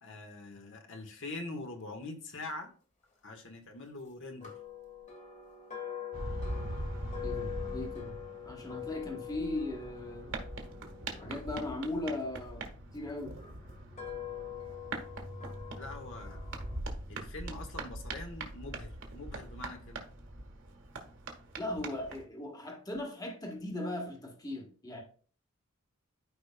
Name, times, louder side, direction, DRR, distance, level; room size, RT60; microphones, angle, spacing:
voice 1, 0.0-2.7 3.2-4.5 15.7-16.4 17.1-20.0, left 2 dB, 65° left, 1.5 m, -44 dB
sound 1, 4.4-12.6 13.3-16.8, left 10 dB, 35° left, 1.6 m, -44 dB
sound 2, 6.1-22.3, right 2 dB, 60° right, 1.5 m, -42 dB
voice 2, 7.2-8.2 8.4-10.4 11.2-13.4 21.6-25.0, left 2 dB, 20° left, 1.3 m, -38 dB
13.0 x 5.0 x 2.3 m
head